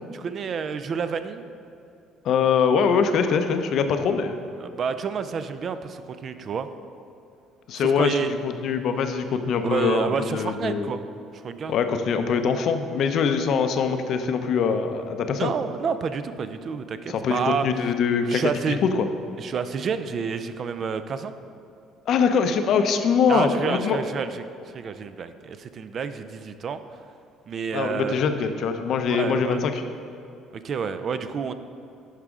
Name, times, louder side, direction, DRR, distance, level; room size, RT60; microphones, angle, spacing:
voice 1, 0.1-1.5 4.6-6.7 7.7-8.3 9.6-11.0 11.3-11.8 15.4-17.7 18.3-18.8 19.4-21.3 23.3-26.8 27.5-28.2 29.1-29.6 30.5-31.5, right 6 dB, 45° right, 11 dB, 0.4 m, -29 dB
voice 2, 2.2-4.4 7.7-10.9 11.7-15.5 17.1-19.1 22.1-24.0 27.7-29.8, left 6 dB, 60° left, 8 dB, 0.6 m, -23 dB
11.0 x 4.8 x 3.7 m, 2.7 s
cardioid pair, 110°, 0 cm